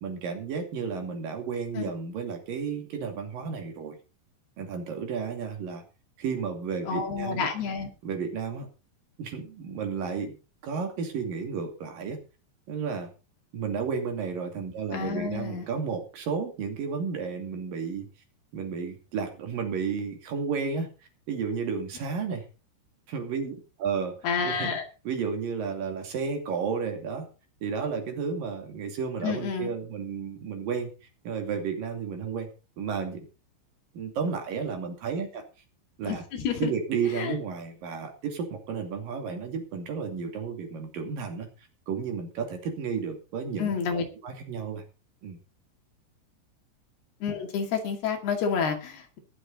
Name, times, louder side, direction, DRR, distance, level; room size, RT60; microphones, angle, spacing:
voice 1, 0.0-4.0 4.6-5.8 6.2-7.5 8.0-8.7 9.2-10.4 10.6-12.2 12.7-13.1 13.5-18.1 18.5-20.9 21.3-22.4 23.1-24.2 24.4-24.8 25.0-27.3 27.6-30.9 31.2-32.5 32.8-33.3 33.9-35.4 36.0-36.2 36.6-41.5 41.9-44.8 45.2-45.4, right 6 dB, 50° right, 4 dB, 3.8 m, -32 dB
voice 2, 6.9-7.9 14.9-15.7 24.2-24.8 29.2-29.7 36.0-36.7 37.2-37.3 43.6-44.0 47.2-49.2, left 6 dB, 60° left, 3 dB, 4.0 m, -29 dB
21.5 x 7.7 x 4.1 m, 0.32 s
omnidirectional pair, 5.6 m